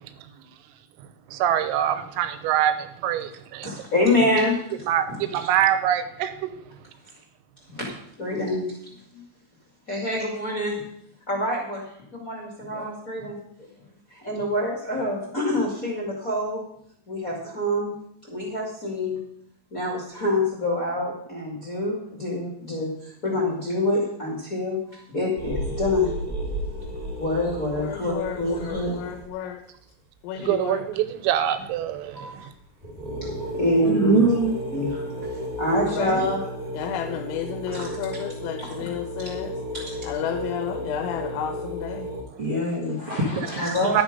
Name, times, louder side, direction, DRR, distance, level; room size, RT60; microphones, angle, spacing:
voice 1, 1.3-3.7 4.9-6.5 30.5-32.5 43.9-44.0, right 11 dB, 85° right, 10 dB, 3.6 m, -24 dB
voice 2, 3.6-4.5 5.1-5.2 7.7-7.9 8.2-8.8 9.1-9.2 9.9-10.8 11.3-13.7 14.1-16.6 17.1-17.9 18.3-19.2 19.7-26.1 27.2-29.0 32.1-32.4 33.2-34.1 34.7-36.4 37.7-37.9 39.7-40.1 43.6-44.0, left 1 dB, 40° left, -2 dB, 1.1 m, -26 dB
sound 1, 25.4-29.3 32.0-32.2 32.5-32.6 32.8-42.2, right 1 dB, 25° right, 2.7 m, -33 dB
voice 3, 27.7-29.6 30.2-30.9 33.6-34.3 35.9-36.2 36.7-39.6 40.0-42.1, left 10 dB, 90° left, 5 dB, 3.6 m, -32 dB
voice 4, 33.8-34.5 34.9-35.0 42.4-43.7, right 2 dB, 65° right, -3 dB, 1.3 m, -23 dB
11.5 x 9.4 x 5.4 m, 0.68 s
omnidirectional pair, 5.9 m